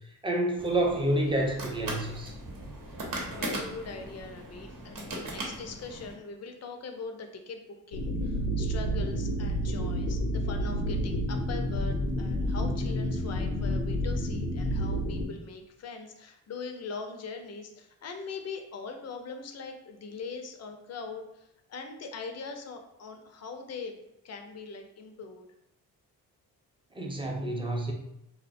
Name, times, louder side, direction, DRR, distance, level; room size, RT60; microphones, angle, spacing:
voice 1, 0.2-2.3 27.0-27.9, right 1 dB, 15° right, 0 dB, 0.5 m, -28 dB
sound 1, 0.6-6.1, right 1 dB, 50° right, 0.8 m, -39 dB
voice 2, 2.9-24.0 24.2-25.5, left 4 dB, 40° left, 5 dB, 0.5 m, -41 dB
sound 2, 7.9-15.3, equal, 85° left, 0.6 m, -29 dB
2.3 x 2.1 x 2.5 m, 0.81 s
supercardioid pair, 50°, 42 cm